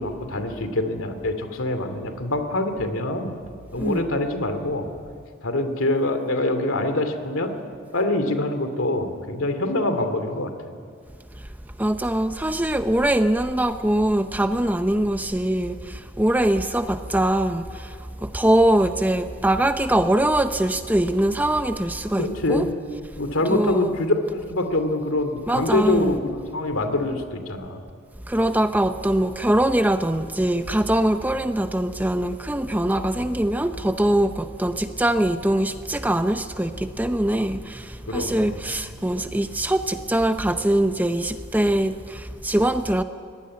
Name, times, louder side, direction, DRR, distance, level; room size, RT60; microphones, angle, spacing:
voice 1, 0.0-3.3 3.7-4.9 5.4-7.5 7.9-10.5 22.2-22.7 23.2-27.8 38.1-38.6, left 2 dB, 75° left, 2.5 m, -25 dB
voice 2, 3.8-4.2 11.8-17.9 18.2-22.7 23.5-23.9 25.5-26.2 28.3-43.0, right 1 dB, 10° right, 0.6 m, -22 dB
24.0 x 19.0 x 9.6 m
head